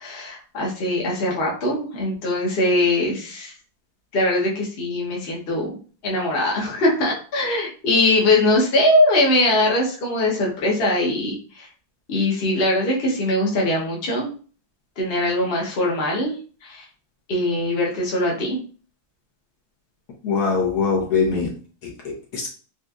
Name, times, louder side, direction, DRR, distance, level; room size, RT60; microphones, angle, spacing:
voice 1, 0.0-3.5 4.1-5.7 6.0-11.7 12.1-14.3 15.0-16.4 16.6-16.8 17.3-18.6, left 1 dB, 45° left, -3 dB, 0.9 m, -21 dB
voice 2, 20.2-22.5, left 5 dB, 65° left, -1 dB, 1.3 m, -23 dB
4.2 x 2.4 x 2.3 m, 0.39 s
omnidirectional pair, 2.0 m